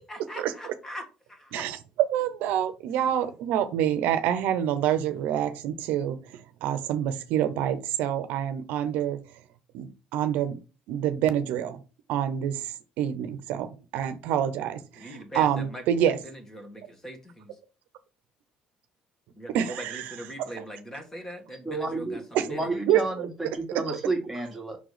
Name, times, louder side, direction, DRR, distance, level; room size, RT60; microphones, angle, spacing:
voice 1, 0.1-1.7 15.0-15.8 16.2-17.5 19.4-22.6, equal, 15° left, 1.8 m, -41 dB
voice 2, 1.5-9.2 9.7-10.6 10.9-11.8 12.1-16.2 19.5-20.2 20.6-20.7 22.3-22.4 22.9-23.0, right 10 dB, 80° right, 0.7 m, -27 dB
voice 3, 21.5-22.2 22.5-24.8, right 2 dB, ahead, 2.1 m, -31 dB
5.4 x 3.8 x 4.9 m
cardioid pair, 100°, 3 cm